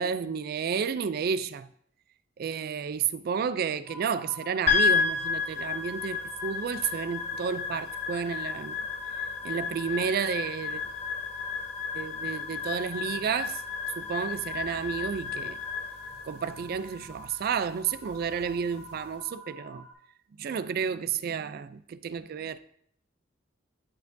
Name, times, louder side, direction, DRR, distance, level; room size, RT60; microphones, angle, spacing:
voice 1, 0.0-1.7 2.4-8.8 9.4-10.8 11.9-13.6 14.0-15.6 16.2-19.9 20.4-22.6, right 6 dB, 50° right, 0.3 m, -31 dB
sound 1, 3.8-19.9, equal, 20° left, 1.9 m, -48 dB
sound 2, 4.7-19.0, left 5 dB, 55° left, 2.5 m, -32 dB
11.0 x 4.3 x 2.6 m
head